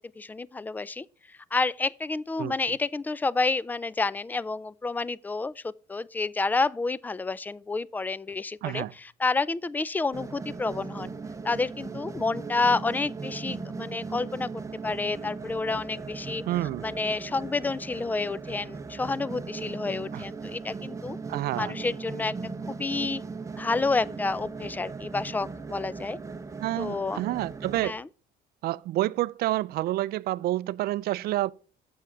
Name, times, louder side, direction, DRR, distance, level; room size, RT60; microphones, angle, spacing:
voice 1, 0.2-1.1 1.5-11.1 11.4-16.4 16.8-21.2 21.6-22.3 22.7-23.2 23.6-26.2 26.8-27.2 27.8-28.1, left 3 dB, 10° left, 0.3 m, -29 dB
voice 2, 8.6-8.9 16.5-16.9 20.1-20.2 21.3-21.7 26.6-28.0 28.6-31.5, right 16 dB, 65° right, 0.4 m, -28 dB
sound 1, 10.1-27.9, right 4 dB, 20° right, 0.8 m, -38 dB
7.6 x 6.2 x 4.6 m
cardioid pair, 110°, 17 cm